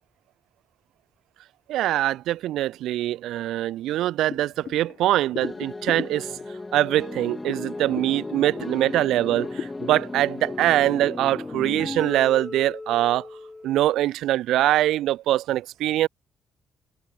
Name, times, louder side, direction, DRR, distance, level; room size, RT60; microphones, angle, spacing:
voice 1, 1.7-6.3 6.7-13.3 13.6-16.1, right 14 dB, 85° right, 0.9 m, -23 dB
sound 1, 4.3-8.9 9.3-11.1, left 7 dB, 55° left, 6.3 m, -39 dB
sound 2, 5.4-13.8, left 2 dB, 20° left, 3.5 m, -35 dB
cardioid pair, 90°, 0 cm